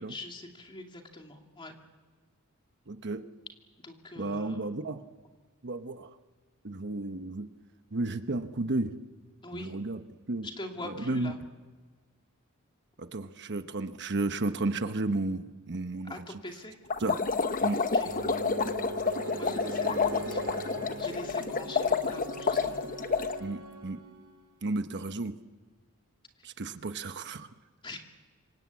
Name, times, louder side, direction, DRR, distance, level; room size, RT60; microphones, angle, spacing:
voice 1, 0.0-1.7 3.8-4.7 9.4-9.7 10.4-11.4 16.1-16.8 17.8-18.1 19.2-20.6 21.0-22.9 27.8-28.1, left 2 dB, 25° left, 2 dB, 2.6 m, -43 dB
voice 2, 2.9-3.2 4.2-5.0 5.6-6.1 6.6-7.5 7.9-8.9 9.5-10.0 10.3-10.5 10.8-11.3 13.0-16.2 17.0-17.2 17.6-17.8 23.4-24.0 24.6-25.3 26.4-27.5, right 2 dB, 55° right, 9 dB, 1.0 m, -33 dB
sound 1, 16.9-23.4, left 5 dB, 40° left, 1.0 m, -29 dB
sound 2, 18.1-24.5, right 2 dB, 70° right, 2.6 m, -40 dB
26.5 x 23.0 x 8.5 m, 1.5 s
head